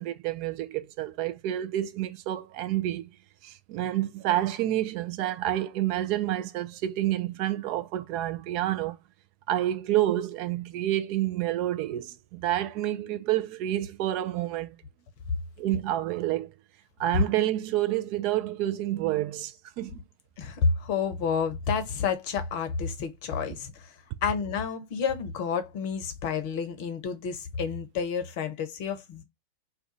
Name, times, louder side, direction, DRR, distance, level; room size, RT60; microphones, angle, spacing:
voice 1, 0.0-3.1 3.4-9.0 9.5-14.8 15.6-16.5 17.0-20.0, right 13 dB, 45° right, 0.4 m, -29 dB
voice 2, 20.4-23.9 24.2-29.2, left 6 dB, 45° left, 0.7 m, -30 dB
2.4 x 2.3 x 3.9 m
figure-of-eight pair, 90°, 0 cm